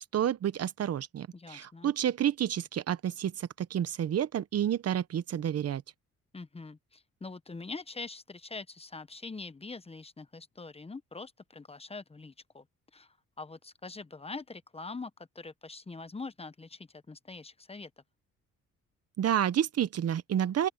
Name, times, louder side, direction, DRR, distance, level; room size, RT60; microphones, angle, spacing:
voice 1, 0.1-5.8 19.2-20.7, right 10 dB, 55° right, 0.9 m, -30 dB
voice 2, 1.3-1.9 6.3-12.7 12.9-17.9, left 3 dB, 20° left, 1.0 m, -44 dB
open air
cardioid pair, 90°, 30 cm